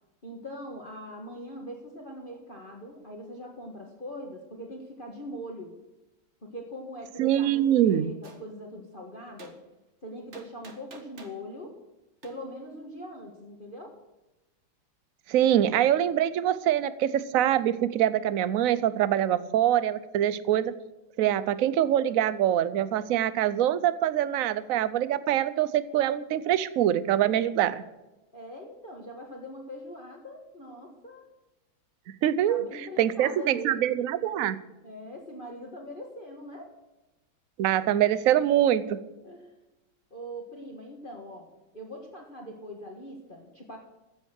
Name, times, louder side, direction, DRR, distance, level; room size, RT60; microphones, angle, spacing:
voice 1, 0.2-5.7 6.4-9.5 10.0-11.7 12.2-13.9 28.3-31.2 32.5-33.9 34.8-36.7 39.2-39.5 40.1-41.5 41.7-43.8, equal, 25° left, 0 dB, 1.7 m, -42 dB
voice 2, 7.2-8.1 15.3-20.7 21.2-27.8 32.2-32.6 33.0-34.6 37.6-39.0, right 11 dB, 65° right, 15 dB, 0.8 m, -24 dB
Gunshot gunfire, 8.2-8.4 9.4-9.5 10.3-11.4 12.2-12.3, right 3 dB, 35° right, 1.7 m, -47 dB
14.5 x 8.1 x 6.4 m, 1.0 s
omnidirectional pair, 2.2 m